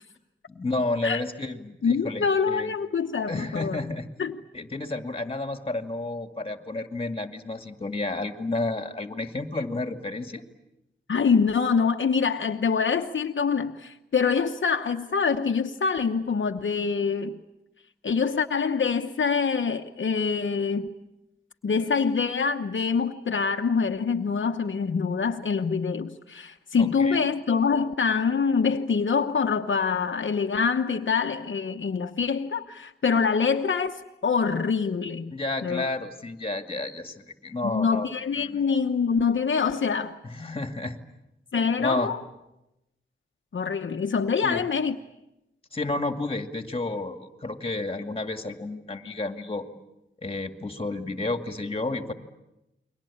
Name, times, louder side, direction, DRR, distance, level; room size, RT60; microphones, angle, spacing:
voice 1, 0.5-2.7 3.3-4.1 4.5-10.4 26.8-27.2 35.3-38.1 38.3-38.6 40.3-41.0 41.8-42.1 44.4-44.6 45.7-49.7 50.2-52.1, left 2 dB, 25° left, 7 dB, 2.2 m, -31 dB
voice 2, 1.8-3.8 4.2-4.4 11.1-17.4 18.0-20.9 21.6-35.3 35.6-35.9 37.6-40.2 41.5-42.2 43.5-45.0, left 5 dB, 65° left, 4 dB, 1.0 m, -25 dB
29.5 x 23.0 x 8.6 m, 0.93 s
wide cardioid pair, 115°, 21 cm